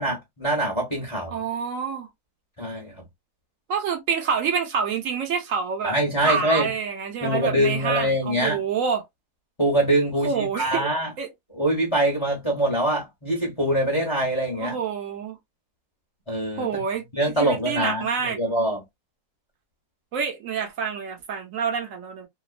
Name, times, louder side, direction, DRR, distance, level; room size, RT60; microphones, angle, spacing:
voice 1, 0.0-1.4 2.6-2.9 5.8-6.7 7.2-8.6 9.6-11.1 11.5-14.7 16.3-16.8 17.1-18.8, right 1 dB, 20° left, 0.9 m, -24 dB
voice 2, 1.3-2.1 3.7-5.9 6.2-9.0 10.2-10.9 11.2-11.3 14.6-15.4 16.6-17.0 17.4-18.4 20.1-22.3, right 6 dB, 60° right, 1.1 m, -27 dB
2.9 x 2.3 x 2.3 m
omnidirectional pair, 1.7 m